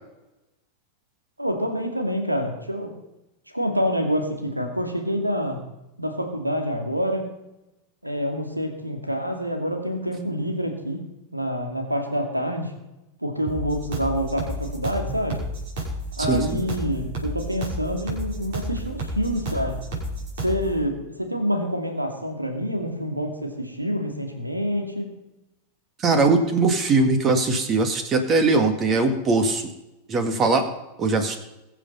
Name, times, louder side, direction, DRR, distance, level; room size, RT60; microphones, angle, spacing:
voice 1, 1.4-2.9 3.5-5.6 6.0-7.3 8.0-11.0 11.3-12.7 13.2-15.4 16.2-19.9 20.4-25.1, equal, 85° right, 4 dB, 2.5 m, -27 dB
sound 1, 13.5-20.7, equal, 55° right, 5.9 m, -31 dB
voice 2, 16.3-16.6 26.0-29.7 30.1-30.7 31.0-31.4, right 3 dB, 25° right, 8 dB, 1.9 m, -21 dB
22.0 x 7.6 x 5.6 m, 0.95 s
figure-of-eight pair, 90°, 0 cm